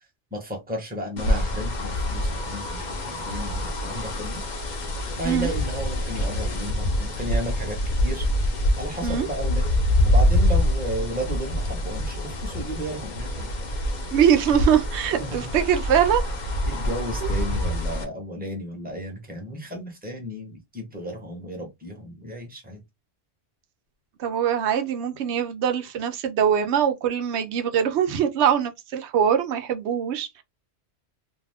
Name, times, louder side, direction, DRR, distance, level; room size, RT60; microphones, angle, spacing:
voice 1, 0.3-4.4 5.2-8.2 8.8-9.7 10.0-13.5 15.2-15.5 16.7-22.8, equal, 10° right, 0.9 m, -33 dB
sound 1, 1.2-18.0, left 1 dB, 50° left, 0.8 m, -25 dB
voice 2, 14.1-16.2 24.2-30.4, right 8 dB, 85° right, 0.9 m, -22 dB
2.6 x 2.3 x 3.3 m
omnidirectional pair, 1.1 m